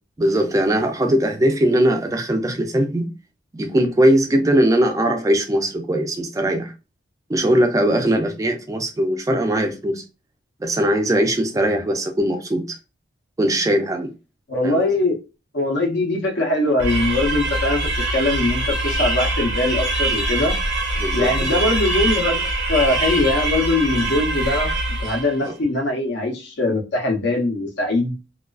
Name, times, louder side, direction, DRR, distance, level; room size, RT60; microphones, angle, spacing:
voice 1, 0.2-3.1 3.5-6.7 7.3-10.0 10.6-12.8 13.4-14.1 14.6-14.9 21.0-21.5 25.4-25.5, right 1 dB, 15° right, 0.4 m, -20 dB
voice 2, 14.5-15.2 15.5-17.8 18.1-20.6 21.1-24.7 25.0-28.1, left 2 dB, 60° left, 0.7 m, -21 dB
sound 1, 16.8-25.4, right 2 dB, 60° right, 0.6 m, -23 dB
2.3 x 2.3 x 2.3 m
head